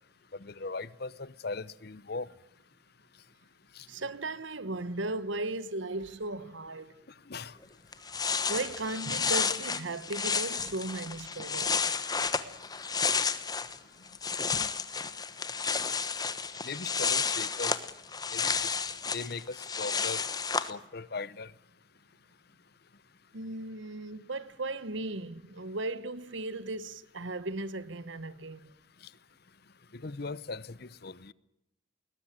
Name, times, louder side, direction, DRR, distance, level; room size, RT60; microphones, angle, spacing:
voice 1, 0.3-2.3 3.7-3.9 7.3-7.6 14.5-14.7 16.6-17.8 18.3-18.7 19.1-20.2 20.6-21.5 29.9-31.3, left 4 dB, 50° left, 0.8 m, -39 dB
voice 2, 3.9-7.0 8.5-11.8 23.3-28.7, right 2 dB, 70° right, 1.3 m, -36 dB
sound 1, 7.6-7.7 7.9-13.8 14.1-20.7, left 5 dB, 20° left, 1.1 m, -31 dB
21.0 x 20.0 x 8.9 m
head